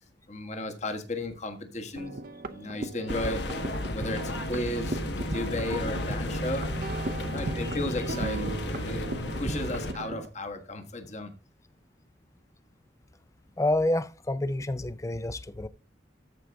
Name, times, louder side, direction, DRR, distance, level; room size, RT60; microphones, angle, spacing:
voice 1, 0.3-2.2 2.5-3.4 3.9-6.7 7.3-9.1 9.4-11.3, left 1 dB, 40° left, 1.4 m, -34 dB
sound 1, 2.0-10.3, right 2 dB, 50° right, 0.7 m, -36 dB
sound 2, 3.1-9.9, left 2 dB, 65° left, 1.1 m, -34 dB
voice 2, 13.6-15.7, left 1 dB, 15° left, 0.4 m, -28 dB
13.5 x 5.0 x 3.4 m
head